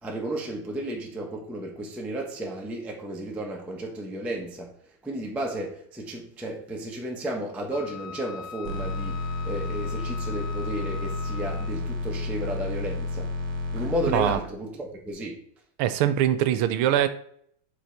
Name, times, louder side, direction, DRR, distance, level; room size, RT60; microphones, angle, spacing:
voice 1, 0.0-13.3 13.7-15.4, right 1 dB, ahead, 0.4 m, -33 dB
Wind instrument woodwind instrument, 7.7-11.9, left 6 dB, 80° left, 1.4 m, -41 dB
sound 1, 8.6-14.3, left 2 dB, 65° right, 1.7 m, -31 dB
voice 2, 15.8-17.1, right 11 dB, 85° right, 1.5 m, -22 dB
7.7 x 4.4 x 3.4 m
omnidirectional pair, 2.3 m